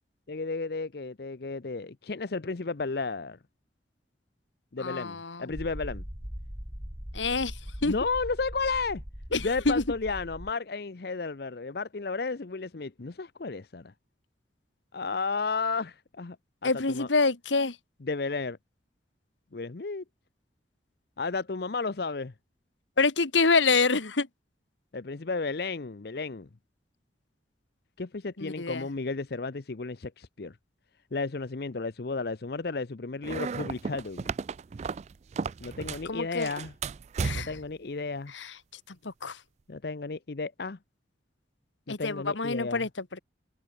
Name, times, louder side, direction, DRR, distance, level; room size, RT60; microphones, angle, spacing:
voice 1, 0.3-3.4 4.7-6.0 7.8-9.0 9.4-13.9 14.9-16.4 16.6-17.1 18.0-18.6 19.5-20.0 21.2-22.3 24.9-26.5 28.0-30.6 31.1-34.3 35.6-36.7 37.3-38.3 39.7-40.8 41.9-42.9, left 4 dB, 55° left, 0.7 m, -33 dB
voice 2, 4.8-5.5 7.1-7.5 7.8-7.9 9.3-9.8 16.6-17.8 23.0-24.3 28.4-28.9 36.1-36.5 37.2-37.5 38.3-38.5 38.9-39.4 41.9-42.9, left 4 dB, 90° left, 1.7 m, -26 dB
sound 1, 5.5-10.5, equal, 20° right, 3.4 m, -40 dB
sound 2, 33.2-36.1 36.4-37.7, right 5 dB, 35° right, 0.3 m, -34 dB
head